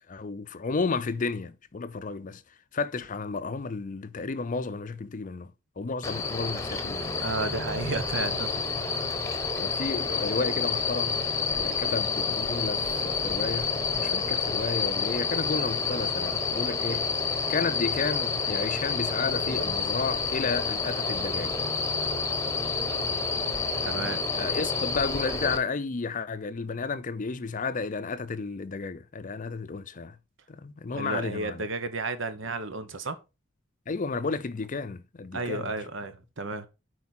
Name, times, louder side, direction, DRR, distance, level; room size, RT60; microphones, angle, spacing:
voice 1, 0.1-2.4 2.7-7.1 8.2-8.3 9.6-11.2 11.5-17.1 17.5-21.6 24.0-30.2 30.5-31.7 33.9-35.7, left 4 dB, 40° left, 0.5 m, -32 dB
sound 1, 6.0-25.6, left 4 dB, 15° left, 1.0 m, -29 dB
voice 2, 7.2-8.5 8.8-8.9 23.8-24.2 30.9-33.2 35.3-36.7, right 3 dB, 65° right, 1.1 m, -32 dB
8.4 x 4.7 x 4.2 m
head